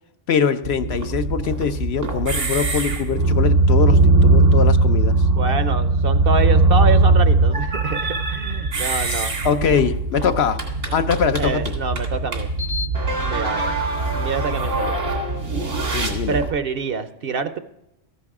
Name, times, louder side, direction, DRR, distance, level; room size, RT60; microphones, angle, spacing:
voice 1, 0.3-5.2 9.1-10.6 10.9-11.6 15.9-16.4, left 6 dB, 65° left, 10 dB, 0.8 m, -22 dB
sound 1, 0.6-16.5, right 2 dB, 90° right, 2.5 m, -20 dB
voice 2, 5.3-9.3 11.4-12.5 13.2-13.6 14.1-15.0 16.3-17.6, right 4 dB, 55° right, 11 dB, 0.8 m, -26 dB
14.0 x 10.0 x 3.6 m, 0.84 s
omnidirectional pair, 1.3 m